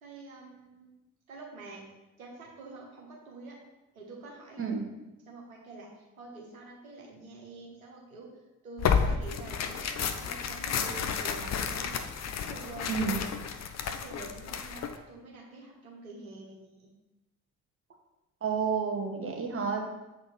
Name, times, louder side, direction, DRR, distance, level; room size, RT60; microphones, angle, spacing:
voice 1, 0.0-0.9 1.3-1.8 2.2-3.6 3.9-4.6 5.2-8.3 8.6-12.0 12.4-13.2 13.8-16.9, right 3 dB, 80° right, -2 dB, 1.4 m, -46 dB
Tearing, 8.8-15.0, left 7 dB, 40° left, 0.7 m, -31 dB
voice 2, 12.9-13.2 18.4-19.9, right 5 dB, 30° right, 1 dB, 1.6 m, -30 dB
7.5 x 4.3 x 5.9 m, 1.0 s
figure-of-eight pair, 45°, 41 cm